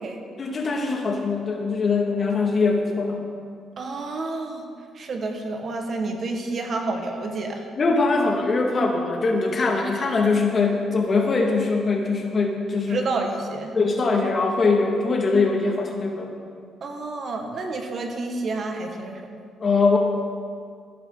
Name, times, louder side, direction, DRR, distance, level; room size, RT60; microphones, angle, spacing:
voice 1, 0.4-3.2 7.8-13.0 13.7-16.3 19.6-20.0, left 3 dB, 40° left, 1 dB, 2.0 m, -22 dB
voice 2, 3.8-4.7 4.9-7.6 12.9-13.7 16.8-19.2, right 3 dB, 50° right, 3 dB, 1.6 m, -29 dB
15.0 x 10.5 x 3.9 m, 2.1 s
cardioid pair, 90°, 0 cm